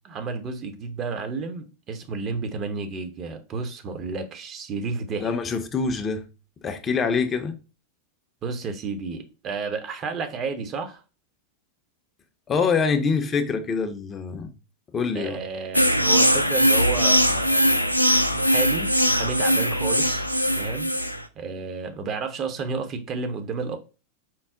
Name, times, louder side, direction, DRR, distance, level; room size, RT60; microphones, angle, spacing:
voice 1, 0.0-5.3 8.4-11.0 15.1-17.6 18.3-20.9 21.4-23.8, right 4 dB, 30° right, 0.6 m, -31 dB
voice 2, 5.2-6.3 6.6-7.6 12.5-14.5 14.9-15.4, left 5 dB, 25° left, 0.5 m, -25 dB
sound 1, 15.7-21.2, equal, 90° left, 0.3 m, -21 dB
4.4 x 2.0 x 3.7 m
figure-of-eight pair, 90°, 0 cm